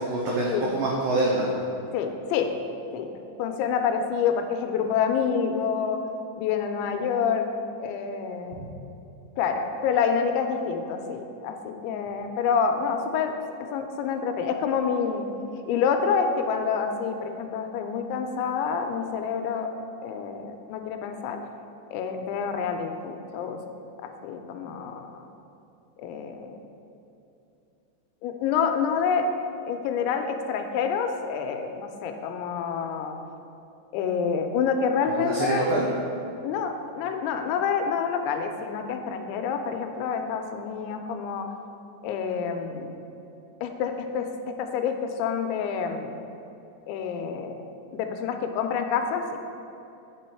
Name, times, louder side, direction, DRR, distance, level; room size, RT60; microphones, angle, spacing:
voice 1, 0.0-1.5 8.5-8.7 35.2-35.9, right 2 dB, 90° right, -3 dB, 2.0 m, -26 dB
voice 2, 1.9-2.5 2.9-3.1 3.4-6.0 6.4-7.5 7.8-8.6 9.4-13.3 13.7-15.3 15.7-19.7 20.0-21.4 21.9-23.6 24.0-25.3 26.0-26.6 28.2-29.3 29.7-33.2 33.9-35.6 36.4-41.5 42.0-43.0 43.6-46.2 46.9-47.6 47.9-49.4, left 6 dB, 85° left, 5 dB, 2.9 m, -27 dB
9.0 x 6.1 x 4.4 m, 2.8 s
omnidirectional pair, 5.2 m